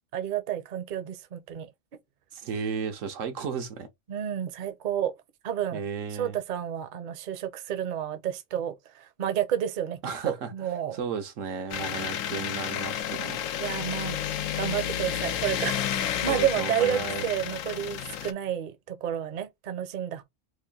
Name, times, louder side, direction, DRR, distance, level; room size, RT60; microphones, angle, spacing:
voice 1, 0.1-1.7 4.1-5.1 5.4-5.8 6.1-10.0 10.2-11.0 13.6-14.2 14.6-20.2, right 10 dB, 50° right, 0.6 m, -30 dB
voice 2, 2.3-3.9 5.7-6.4 10.0-10.5 10.9-13.4 16.3-17.2, right 6 dB, 85° right, 1.2 m, -34 dB
sound 1, 11.7-18.3, left 10 dB, 90° left, 1.0 m, -31 dB
3.1 x 2.5 x 3.8 m
omnidirectional pair, 1.3 m